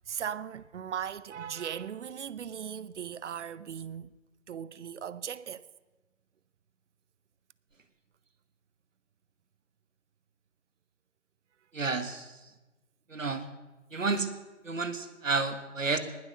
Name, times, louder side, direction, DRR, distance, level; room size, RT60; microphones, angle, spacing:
voice 1, 0.1-4.1 4.5-5.7, right 8 dB, 65° right, 0.8 m, -38 dB
voice 2, 11.7-12.4 13.1-13.5 13.9-14.3 14.6-16.0, right 4 dB, 90° right, 1.5 m, -31 dB
19.5 x 7.9 x 6.6 m
figure-of-eight pair, 130°, 38 cm